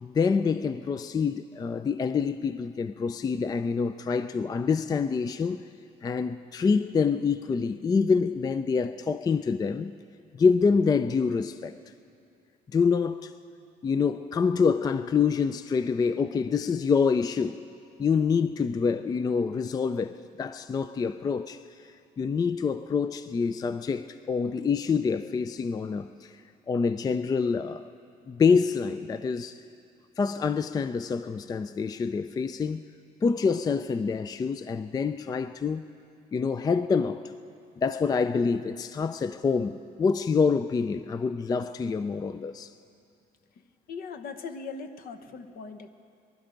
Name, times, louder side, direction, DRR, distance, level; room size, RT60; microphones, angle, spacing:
voice 1, 0.0-5.7 6.0-9.9 10.4-11.7 12.7-13.3 13.8-17.6 18.0-21.6 22.2-26.3 26.7-27.9 28.3-29.6 30.2-32.8 33.2-35.8 36.3-37.2 37.8-42.7, left 5 dB, 25° left, 0.3 m, -26 dB
voice 2, 43.9-45.9, left 4 dB, 60° left, 1.0 m, -39 dB
23.0 x 12.0 x 5.1 m
cardioid pair, 110°, 17 cm